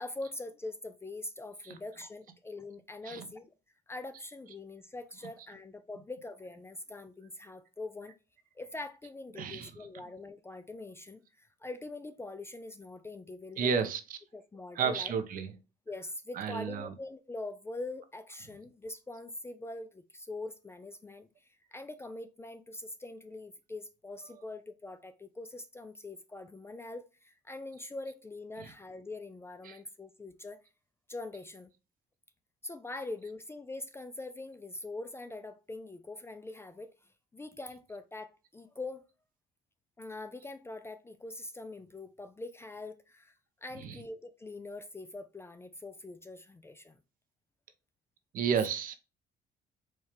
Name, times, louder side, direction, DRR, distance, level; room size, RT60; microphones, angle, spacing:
voice 1, 0.0-3.5 3.9-8.1 8.6-13.9 14.3-15.1 15.9-30.6 31.1-31.7 32.6-36.9 37.3-39.1 40.0-43.4 43.6-47.0, left 2 dB, 15° left, 0.3 m, -43 dB
voice 2, 9.4-9.7 13.6-14.0 14.8-15.5 16.3-16.9 28.6-28.7 29.6-29.8 43.7-44.0 48.3-49.0, right 6 dB, 55° right, 0.7 m, -32 dB
4.4 x 2.3 x 3.2 m
cardioid pair, 110°, 17 cm